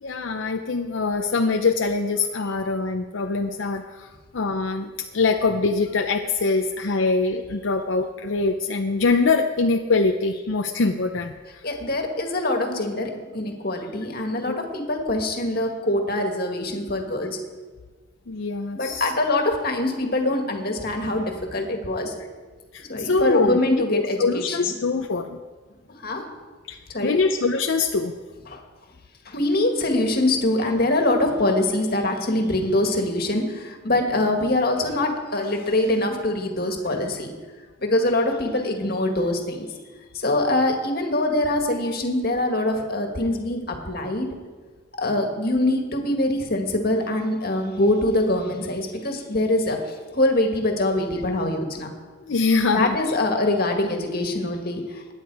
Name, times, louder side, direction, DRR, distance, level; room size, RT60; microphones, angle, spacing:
voice 1, 0.0-11.6 14.5-14.6 18.3-19.1 22.7-25.4 26.7-28.2 52.3-53.2, left 3 dB, 75° left, 4 dB, 0.6 m, -23 dB
voice 2, 11.6-17.4 18.7-22.1 22.8-24.7 26.0-26.2 26.9-27.2 28.5-28.6 29.3-37.3 37.8-39.7 40.1-44.4 45.0-49.8 50.1-51.9 52.7-55.1, left 1 dB, 50° left, 3 dB, 1.9 m, -24 dB
21.0 x 9.8 x 4.8 m, 1.4 s
head